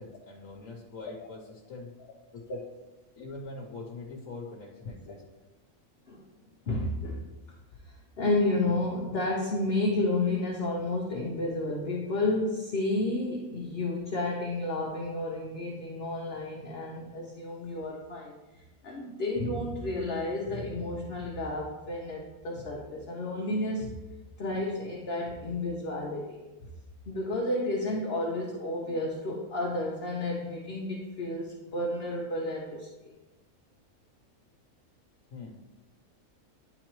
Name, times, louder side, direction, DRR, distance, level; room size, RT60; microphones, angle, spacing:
voice 1, 0.0-1.9 2.3-2.6 3.1-5.2 28.1-28.2 35.3-35.6, left 3 dB, 70° left, -2 dB, 1.2 m, -43 dB
voice 2, 6.7-7.2 7.9-18.3 18.8-24.0 24.4-26.4 27.1-33.1, left 2 dB, 55° left, -1 dB, 0.9 m, -31 dB
10.0 x 3.9 x 3.1 m, 1.1 s
omnidirectional pair, 1.4 m